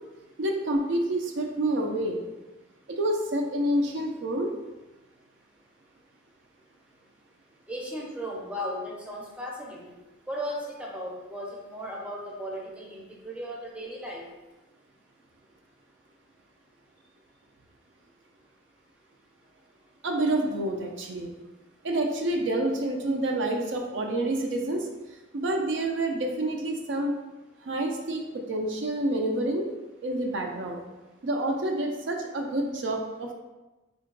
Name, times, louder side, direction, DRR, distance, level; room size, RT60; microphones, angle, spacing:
voice 1, 0.4-2.2 3.0-4.5 20.0-21.3 21.8-24.9 25.3-27.1 27.7-29.7 30.0-30.8 31.2-33.3, right 1 dB, 65° right, 2 dB, 0.4 m, -28 dB
voice 2, 7.7-10.0 10.3-14.2, equal, 5° right, -3 dB, 0.5 m, -36 dB
3.7 x 2.2 x 3.8 m, 1.1 s
head